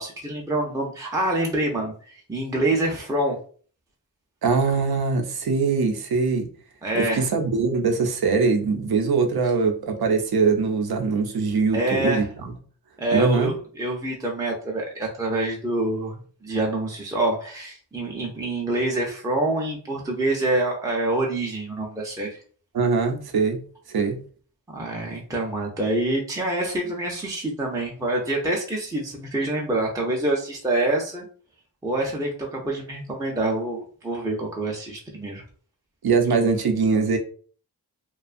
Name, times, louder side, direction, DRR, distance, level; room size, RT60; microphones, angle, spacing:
voice 1, 0.0-3.4 6.8-7.3 11.7-12.3 13.0-22.4 24.7-31.3 31.8-35.4, right 2 dB, 10° right, -1 dB, 0.5 m, -26 dB
voice 2, 4.4-6.5 6.9-12.5 13.1-13.5 22.7-23.6 23.9-24.2 36.0-37.2, right 4 dB, 70° right, 5 dB, 0.6 m, -22 dB
2.5 x 2.3 x 2.4 m, 0.44 s
cardioid pair, 65°, 38 cm